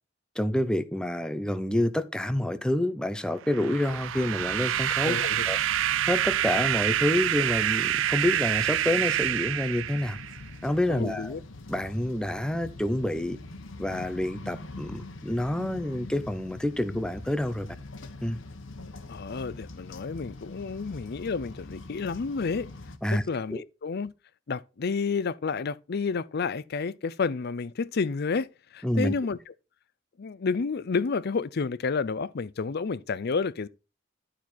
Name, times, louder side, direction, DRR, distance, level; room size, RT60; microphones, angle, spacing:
voice 1, 0.4-5.2 5.5-5.6 6.1-10.2 10.6-11.4 11.7-13.4 13.8-17.7 18.2-18.4 23.0-23.2 23.5-23.6 28.8-29.1, left 1 dB, 5° left, 0.6 m, -28 dB
sound 1, 3.5-10.5, right 12 dB, 75° right, 0.4 m, -27 dB
sound 2, 3.8-23.0, left 2 dB, 75° left, 1.1 m, -44 dB
voice 2, 5.0-5.5 10.9-11.4 19.1-22.7 23.1-24.1 24.5-28.5 28.7-29.4 30.2-33.7, left 4 dB, 55° left, 0.5 m, -30 dB
12.0 x 4.4 x 4.3 m
head